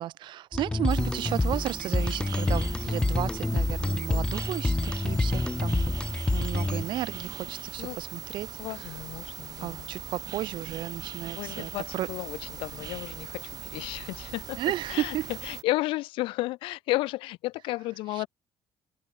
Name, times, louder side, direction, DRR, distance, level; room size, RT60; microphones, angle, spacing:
voice 1, 0.0-5.9 6.3-8.5 9.6-12.1 14.6-15.3, right 13 dB, 65° right, 2.7 m, -33 dB
sound 1, 0.5-7.2, left 2 dB, 10° left, 0.5 m, -28 dB
sound 2, 0.9-15.6, right 9 dB, 50° right, 3.3 m, -40 dB
voice 2, 8.6-9.9 11.4-14.6 14.9-18.3, left 19 dB, 85° left, 7.9 m, -33 dB
cardioid pair, 125°, 9 cm